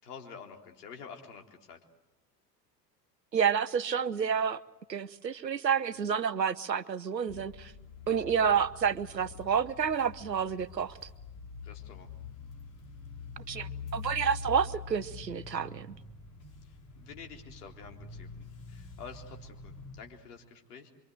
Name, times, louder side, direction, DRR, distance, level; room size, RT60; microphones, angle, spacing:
voice 1, 0.0-1.8 5.9-6.0 8.1-8.4 11.6-12.1 16.9-20.9, left 6 dB, 65° left, 2 dB, 4.0 m, -49 dB
voice 2, 3.3-4.6 4.9-7.7 8.1-10.9 13.5-15.9, right 7 dB, 85° right, 16 dB, 0.9 m, -29 dB
sound 1, 7.3-20.0, left 5 dB, 40° left, 5.2 m, -45 dB
26.5 x 24.5 x 7.9 m, 0.99 s
figure-of-eight pair, 70°, 49 cm